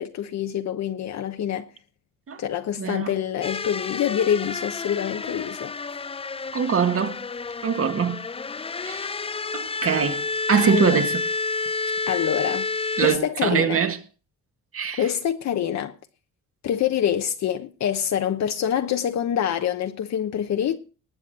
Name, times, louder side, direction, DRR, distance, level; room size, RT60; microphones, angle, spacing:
voice 1, 0.0-1.7 2.4-5.7 10.7-11.0 12.1-12.7 13.0-13.8 15.0-15.9 16.6-20.8, left 9 dB, 65° left, 1.0 m, -26 dB
voice 2, 2.8-3.1 6.5-7.2 7.6-8.2 8.8-9.1 9.5-10.2 10.5-11.2 13.0-14.0 14.7-15.0, right 7 dB, 50° right, 1.9 m, -23 dB
sound 1, 3.4-13.2, left 3 dB, 20° left, 0.5 m, -30 dB
19.5 x 7.8 x 4.2 m
cardioid pair, 90°, 30 cm